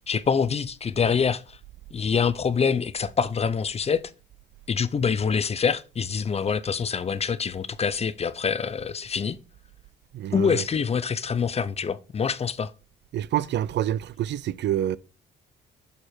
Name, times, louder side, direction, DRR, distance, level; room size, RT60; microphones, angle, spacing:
voice 1, 0.1-1.6 1.9-4.0 4.7-9.4 10.3-12.7, left 6 dB, 30° left, 0.5 m, -25 dB
voice 2, 10.1-10.6 13.1-15.0, right 12 dB, 65° right, 0.4 m, -27 dB
6.7 x 4.4 x 4.5 m
cardioid pair, 90°, 20 cm